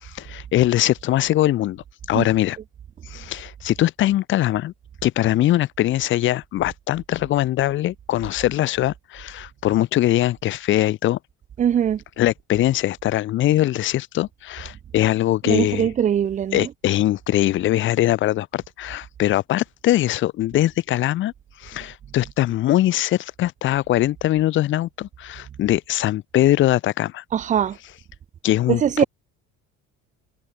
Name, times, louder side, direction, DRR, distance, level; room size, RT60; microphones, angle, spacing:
voice 1, 0.0-2.6 3.1-4.7 5.0-11.2 12.2-15.9 16.5-21.3 21.6-27.2 28.4-29.0, left 14 dB, 40° left, 0.5 m, -21 dB
voice 2, 11.6-12.0 15.5-16.7 27.3-27.8 28.7-29.0, right 9 dB, 25° right, 0.4 m, -21 dB
cardioid pair, 140°, 29 cm